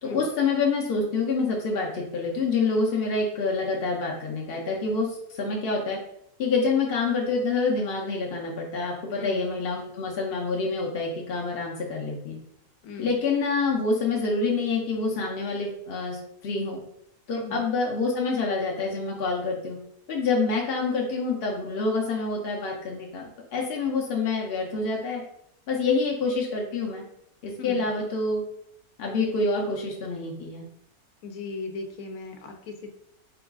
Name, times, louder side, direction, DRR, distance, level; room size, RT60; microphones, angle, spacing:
voice 1, 0.0-6.0 6.4-12.4 13.0-16.8 17.3-19.8 20.1-23.2 23.5-25.2 25.7-27.0 27.4-28.4 29.0-30.6, left 3 dB, 60° left, -2 dB, 0.6 m, -27 dB
voice 2, 12.8-13.2 17.3-17.6 27.6-27.9 31.2-32.9, left 3 dB, 80° left, 5 dB, 1.1 m, -38 dB
3.8 x 2.3 x 3.5 m, 0.75 s
omnidirectional pair, 1.6 m